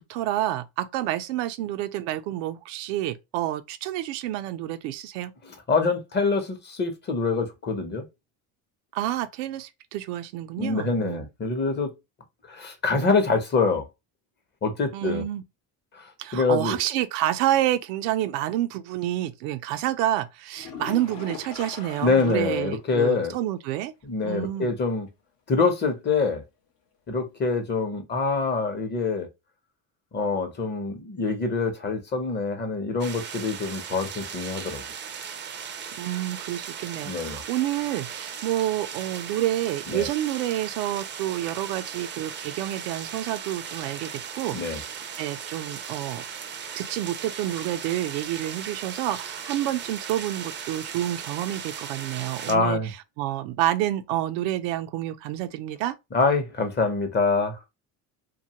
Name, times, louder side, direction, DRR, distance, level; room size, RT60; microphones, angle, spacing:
voice 1, 0.0-5.3 8.9-11.3 14.9-15.4 16.2-23.9 24.2-24.8 36.0-44.9 45.2-46.2 46.7-52.8 53.2-55.9, right 13 dB, 90° right, 0.5 m, -29 dB
voice 2, 5.4-8.1 10.6-11.9 12.5-13.9 14.6-15.2 15.9-16.8 22.0-23.3 24.0-25.1 25.5-26.4 27.1-29.3 30.1-34.8 37.1-37.4 39.9-40.1 44.5-44.8 52.5-52.9 56.1-57.6, left 4 dB, 25° left, 0.7 m, -25 dB
sound 1, 20.5-22.8 23.1-23.2 23.7-23.8 27.5-27.6, left 5 dB, 70° left, 0.8 m, -40 dB
sound 2, 33.0-52.5, right 7 dB, 30° right, 0.4 m, -37 dB
2.6 x 2.3 x 2.8 m
cardioid pair, 120°, 39 cm